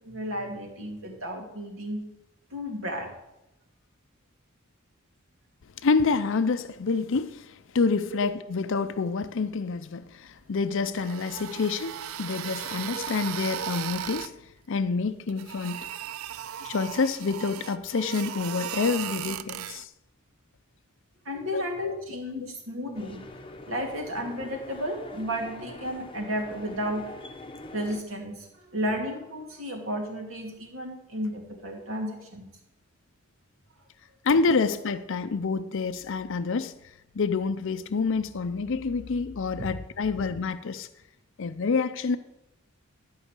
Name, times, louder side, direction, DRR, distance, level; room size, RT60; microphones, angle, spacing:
voice 1, 0.0-2.1 2.5-3.1 8.1-8.2 21.2-23.2 23.7-27.1 27.7-32.5 39.6-39.7, equal, 70° right, 2.5 m, -33 dB
voice 2, 5.8-14.3 14.7-15.9 16.6-19.9 21.5-21.6 34.2-36.7 37.1-40.9 41.4-42.2, left 4 dB, 65° left, 0.5 m, -27 dB
sound 1, 10.8-14.3 15.3-19.8, right 10 dB, 90° right, 0.5 m, -36 dB
sound 2, 22.9-28.0, left 2 dB, 25° left, 0.8 m, -44 dB
12.0 x 5.6 x 8.1 m
head